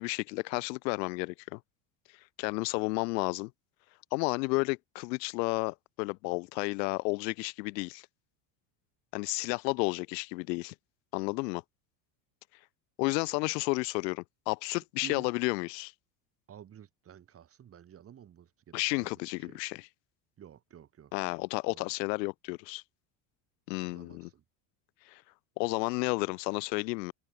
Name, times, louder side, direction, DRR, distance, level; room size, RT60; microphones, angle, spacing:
voice 1, 0.0-1.6 2.4-3.5 4.1-8.0 9.1-10.7 11.1-11.6 13.0-15.9 18.7-19.9 21.1-22.8 23.7-24.3 25.1-25.2 25.6-27.1, left 26 dB, 90° left, 1.8 m, -32 dB
voice 2, 16.5-19.1 19.4-19.6 20.4-21.1 21.7-21.9 23.9-24.4, right 9 dB, 30° right, 2.7 m, -51 dB
open air
cardioid pair, 150°, 48 cm